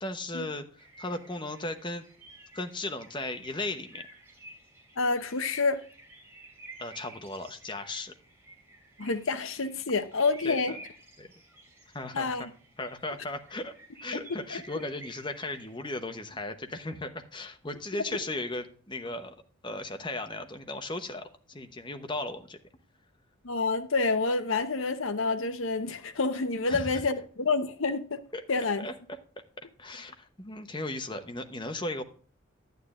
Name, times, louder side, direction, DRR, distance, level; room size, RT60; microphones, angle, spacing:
voice 1, 0.0-2.0 2.5-4.1 6.8-8.1 10.4-10.8 11.2-11.3 11.9-12.5 12.8-13.7 14.0-19.4 19.6-22.6 26.7-27.0 28.3-28.4 28.8-29.2 29.6-32.0, left 2 dB, 20° left, 0.9 m, -36 dB
sound 1, 0.8-15.7, right 2 dB, 10° right, 3.2 m, -52 dB
voice 2, 5.0-5.8 9.0-10.7 12.1-12.5 14.5-14.6 23.4-28.2 28.5-28.8, left 3 dB, 65° left, 0.9 m, -28 dB
11.5 x 9.3 x 2.5 m
head